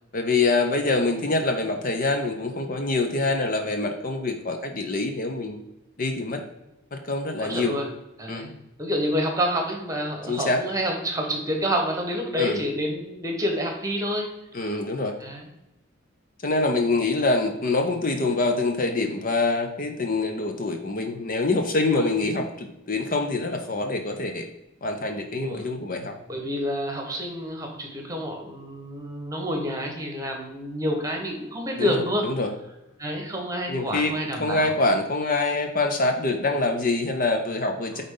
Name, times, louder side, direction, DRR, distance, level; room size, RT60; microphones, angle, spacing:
voice 1, 0.1-5.6 6.0-6.4 6.9-7.8 8.3-8.5 10.3-10.6 12.4-12.6 14.5-15.2 16.4-24.5 24.8-26.1 31.7-32.5 33.7-38.0, left 2 dB, 40° left, 4 dB, 0.6 m, -25 dB
voice 2, 7.4-7.9 8.2-8.5 8.8-14.3 15.2-15.4 21.9-22.1 25.4-25.7 26.3-32.3 33.0-34.7 37.9-38.0, equal, 15° right, 2 dB, 1.3 m, -28 dB
9.1 x 3.9 x 3.8 m, 0.94 s
head